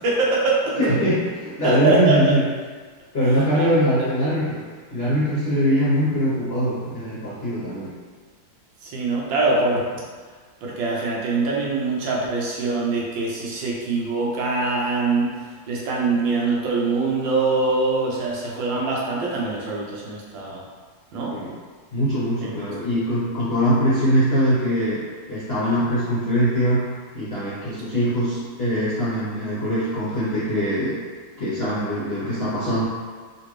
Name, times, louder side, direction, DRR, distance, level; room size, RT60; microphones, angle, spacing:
voice 1, 0.0-0.7 1.6-2.4 3.3-3.7 8.8-9.9 10.6-15.4 15.7-20.6 21.1-21.3 27.9-28.1, right 3 dB, 75° right, -4 dB, 1.4 m, -23 dB
voice 2, 0.8-2.4 3.1-4.6 4.9-7.9 21.3-21.5 21.9-25.0 25.3-26.8 27.1-31.0 31.4-32.8, equal, 55° left, -11 dB, 0.7 m, -22 dB
3.9 x 2.6 x 3.1 m, 1.5 s
omnidirectional pair, 2.1 m